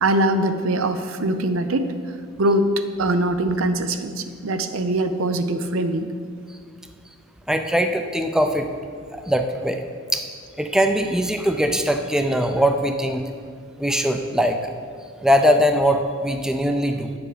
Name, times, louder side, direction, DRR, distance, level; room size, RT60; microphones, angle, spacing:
voice 1, 0.0-1.9 2.4-6.1, right 1 dB, 85° right, 9 dB, 0.6 m, -22 dB
voice 2, 7.5-8.7 9.1-9.8 10.1-10.3 10.6-13.2 13.8-14.7 15.2-17.1, equal, 5° right, 6 dB, 0.4 m, -21 dB
8.8 x 7.0 x 5.0 m, 2.1 s
head